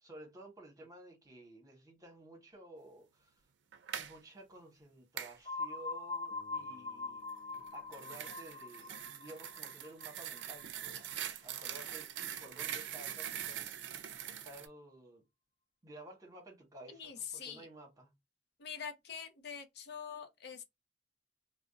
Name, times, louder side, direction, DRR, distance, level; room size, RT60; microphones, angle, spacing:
voice 1, 0.0-3.4 3.9-7.2 7.7-11.1 11.4-12.1 12.4-13.7 14.2-15.2 15.8-18.1, right 1 dB, 20° right, 1.0 m, -53 dB
sound 1, 3.7-4.1 5.2-5.4 7.5-14.7, right 10 dB, 80° right, 0.4 m, -43 dB
sound 2, 5.4-11.1, left 3 dB, 45° left, 0.9 m, -43 dB
sound 3, 6.3-10.5, left 5 dB, 20° left, 0.9 m, -65 dB
voice 2, 17.0-17.6 18.6-20.6, left 7 dB, 65° left, 0.5 m, -44 dB
2.5 x 2.1 x 3.7 m
head